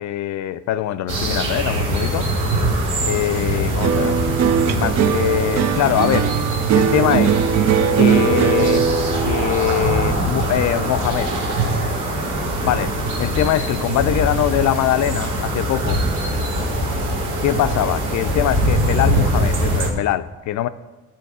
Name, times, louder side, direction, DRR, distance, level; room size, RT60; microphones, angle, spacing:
voice 1, 0.0-2.3 3.0-4.2 4.7-6.3 6.7-7.4 8.0-8.8 9.2-11.3 12.6-16.0 17.4-20.7, left 12 dB, 70° left, 0.5 m, -22 dB
sound 1, 1.1-19.9, right 1 dB, 85° right, 1.5 m, -22 dB
sound 2, 3.8-12.3 12.6-13.2, right 7 dB, 60° right, 0.6 m, -20 dB
10.5 x 4.5 x 4.8 m
cardioid pair, 90°, 30 cm